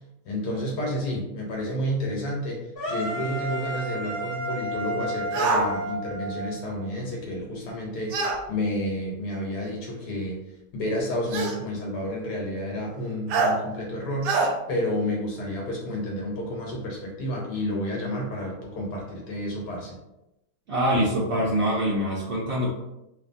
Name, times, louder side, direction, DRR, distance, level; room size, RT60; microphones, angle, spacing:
voice 1, 0.2-10.4 10.7-20.0, left 1 dB, 75° left, -1 dB, 1.2 m, -30 dB
sound 1, 2.8-6.9, right 1 dB, 40° left, 1.0 m, -32 dB
sound 2, 5.3-5.7 8.1-8.4 9.6-9.7 11.3-11.6 13.3-13.5 14.2-14.5, right 4 dB, 85° right, 1.2 m, -23 dB
voice 2, 20.7-22.7, equal, 70° right, -6 dB, 0.6 m, -24 dB
3.0 x 2.4 x 2.5 m, 0.89 s
omnidirectional pair, 1.8 m